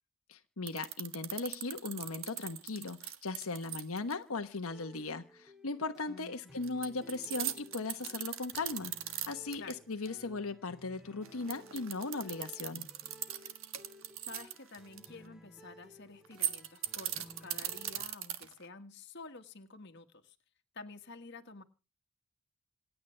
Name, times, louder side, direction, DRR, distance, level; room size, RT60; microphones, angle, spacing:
voice 1, 0.3-12.9, left 3 dB, 90° left, 1.1 m, -38 dB
sound 1, 0.7-4.1 6.6-9.7 10.0-10.1 11.2-15.1 16.2-18.6, right 12 dB, 70° right, 1.5 m, -39 dB
sound 2, 4.7-18.1, left 1 dB, ahead, 2.9 m, -57 dB
voice 2, 6.1-6.6 9.5-9.8 13.4-13.6 14.2-20.4 20.7-21.6, left 3 dB, 55° left, 1.7 m, -50 dB
27.0 x 9.5 x 3.3 m
head